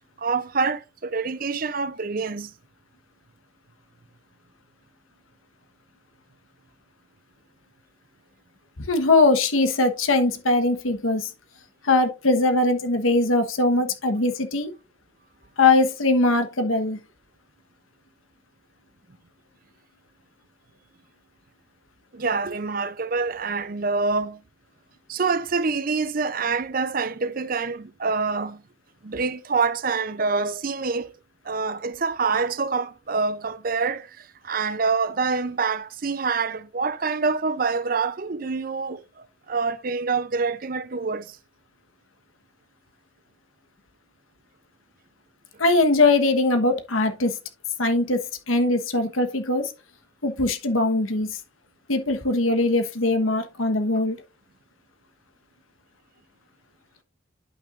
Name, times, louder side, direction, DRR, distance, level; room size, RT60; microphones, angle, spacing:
voice 1, 0.2-2.5 22.1-24.4 25.1-28.6 29.0-31.1 31.4-41.4, right 4 dB, 45° right, 0.6 m, -26 dB
voice 2, 8.8-11.3 11.8-14.7 15.6-17.0 45.6-47.4 47.8-48.2 48.5-49.7 50.2-51.4 51.9-54.2, left 2 dB, 90° left, 1.2 m, -21 dB
10.5 x 6.0 x 2.5 m
head